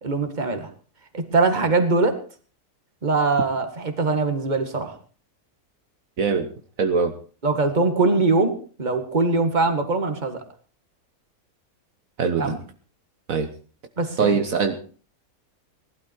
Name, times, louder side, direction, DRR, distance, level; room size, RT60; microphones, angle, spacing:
voice 1, 0.0-0.7 1.1-2.2 3.0-4.9 7.4-10.4 12.4-12.6 14.0-14.4, right 3 dB, 30° right, 6 dB, 2.0 m, -22 dB
voice 2, 6.2-6.5 6.8-7.1 12.2-12.5 13.3-13.5 14.2-14.8, right 5 dB, 65° right, 7 dB, 1.6 m, -22 dB
18.5 x 12.0 x 4.6 m, 0.41 s
omnidirectional pair, 1.6 m